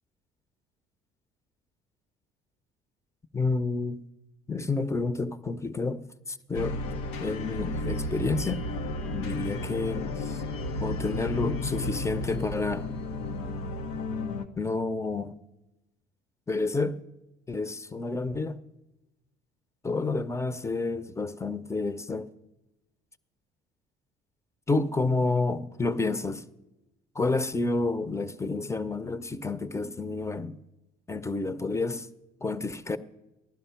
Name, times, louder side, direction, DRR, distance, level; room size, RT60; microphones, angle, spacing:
voice 1, 3.3-4.0 4.5-6.0 6.3-6.8 7.2-8.6 9.1-10.4 10.8-12.9 14.6-15.4 16.5-17.0 17.5-18.6 19.8-22.3 24.7-26.4 27.1-30.6 31.1-32.1 32.4-33.0, left 3 dB, 15° left, 0.7 m, -29 dB
sound 1, 6.5-14.4, left 2 dB, 85° left, 0.9 m, -33 dB
15.5 x 11.0 x 5.8 m
supercardioid pair, 75°, 20 cm